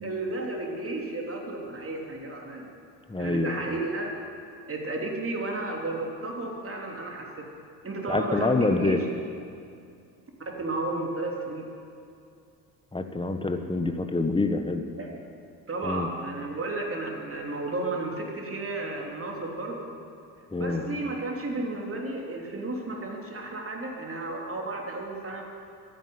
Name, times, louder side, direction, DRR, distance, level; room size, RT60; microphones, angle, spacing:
voice 1, 0.0-2.7 3.2-4.1 4.7-7.4 7.8-9.0 10.5-11.7 15.0-15.1 15.7-19.9 20.6-25.4, right 2 dB, 25° right, 0 dB, 3.6 m, -33 dB
voice 2, 3.1-3.5 8.1-9.0 12.9-14.9 15.8-16.1 20.5-20.9, left 2 dB, 10° left, 7 dB, 1.5 m, -26 dB
13.5 x 10.0 x 9.6 m, 2.5 s
hypercardioid pair, 55°, 49 cm